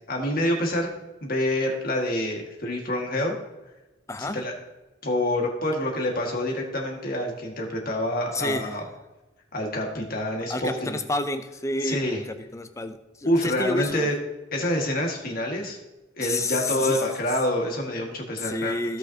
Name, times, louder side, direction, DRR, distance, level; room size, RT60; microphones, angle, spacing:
voice 1, 0.1-0.9 1.2-3.4 4.2-4.5 5.0-8.8 9.5-11.0 11.8-12.2 13.2-14.2 14.5-15.8 16.2-18.7, left 1 dB, 45° left, 1 dB, 1.9 m, -27 dB
voice 2, 4.1-4.4 8.3-8.8 10.5-14.1 16.2-17.1 18.4-19.0, left 2 dB, 15° left, 9 dB, 0.5 m, -30 dB
16.5 x 5.9 x 2.9 m, 1.1 s
head